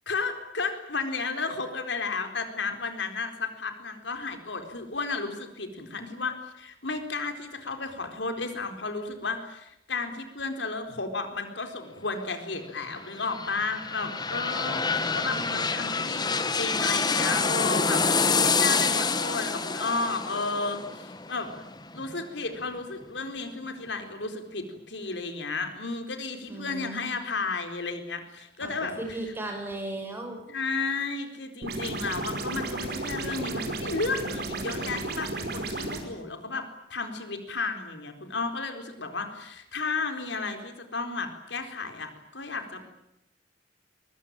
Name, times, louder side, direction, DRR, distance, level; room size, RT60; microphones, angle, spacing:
voice 1, 0.1-21.5 21.9-28.9 30.5-42.8, left 3 dB, 80° left, 7 dB, 4.2 m, -33 dB
sound 1, 13.0-22.6 23.0-23.1, left 4 dB, 25° left, 1.5 m, -27 dB
voice 2, 15.3-16.0 26.5-27.1 28.6-30.4, right 1 dB, 15° right, 3 dB, 7.0 m, -37 dB
sound 2, 31.6-36.0, right 2 dB, 60° right, 5.2 m, -33 dB
23.5 x 23.5 x 9.0 m, 0.85 s
head